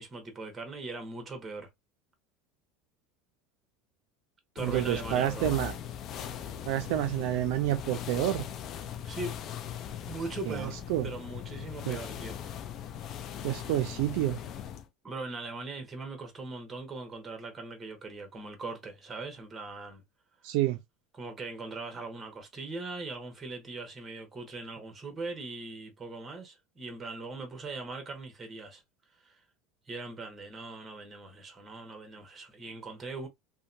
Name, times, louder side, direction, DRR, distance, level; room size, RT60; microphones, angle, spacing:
voice 1, 0.0-1.7 4.5-5.5 9.0-9.3 10.1-12.4 15.0-20.0 21.1-28.8 29.2-29.4 29.9-33.3, right 3 dB, 20° right, 1.1 m, -40 dB
sound 1, 4.6-14.9, left 9 dB, 45° left, 0.4 m, -39 dB
voice 2, 4.6-5.7 6.7-8.4 10.5-11.1 11.9-12.0 13.4-14.4 20.4-20.8, right 14 dB, 70° right, 0.4 m, -29 dB
2.8 x 2.2 x 2.5 m
supercardioid pair, 120°, 0 cm